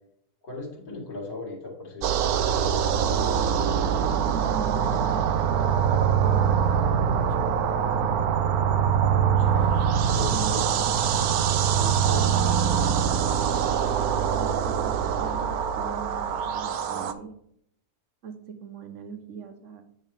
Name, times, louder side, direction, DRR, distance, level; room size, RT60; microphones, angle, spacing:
voice 1, 0.4-2.3 9.4-9.9 10.2-10.6 11.6-12.3, left 3 dB, 70° left, -3 dB, 2.6 m, -38 dB
sound 1, 2.0-17.1, right 8 dB, 75° right, 1.1 m, -23 dB
voice 2, 4.3-6.7 7.2-7.6 10.3-10.9 14.3-14.9 15.2-17.4 18.2-19.8, right 6 dB, 55° right, 7 dB, 1.2 m, -40 dB
9.5 x 5.5 x 3.5 m, 0.70 s
omnidirectional pair, 1.6 m